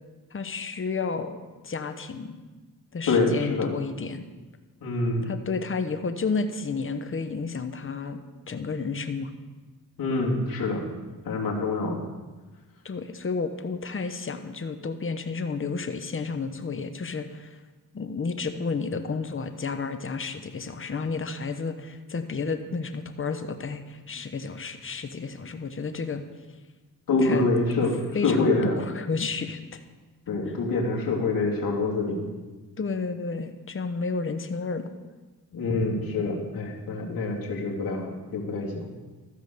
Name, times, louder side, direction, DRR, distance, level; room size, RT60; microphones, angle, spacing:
voice 1, 0.3-1.4 1.6-2.4 2.9-4.2 5.2-8.2 8.5-9.3 12.8-17.5 17.9-26.2 27.2-27.5 28.1-29.6 32.8-34.9, left 4 dB, 35° left, 8 dB, 1.0 m, -31 dB
voice 2, 3.1-3.7 4.8-5.3 10.0-10.9 11.2-12.0 27.1-28.8 30.3-32.3 35.5-38.9, left 3 dB, 65° left, -3 dB, 2.7 m, -26 dB
13.5 x 5.0 x 6.7 m, 1.3 s
cardioid pair, 65°, 38 cm